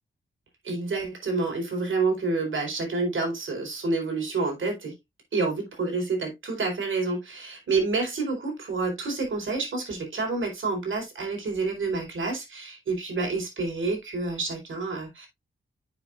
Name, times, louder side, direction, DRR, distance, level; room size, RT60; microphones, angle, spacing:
voice 1, 0.6-4.9 5.3-15.3, right 3 dB, 80° right, 4.3 m, -28 dB
10.5 x 7.2 x 2.5 m
wide cardioid pair, 140°, 20 cm